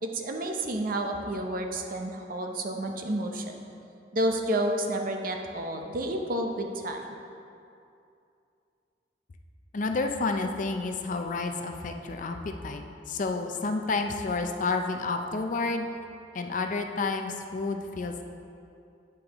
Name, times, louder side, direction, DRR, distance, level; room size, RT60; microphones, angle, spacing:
voice 1, 0.0-3.4 4.1-7.0, right 1 dB, 50° right, 3 dB, 0.7 m, -30 dB
voice 2, 9.7-15.9 16.3-18.2, left 3 dB, 45° left, 5 dB, 0.5 m, -30 dB
9.0 x 7.4 x 3.0 m, 2.6 s
head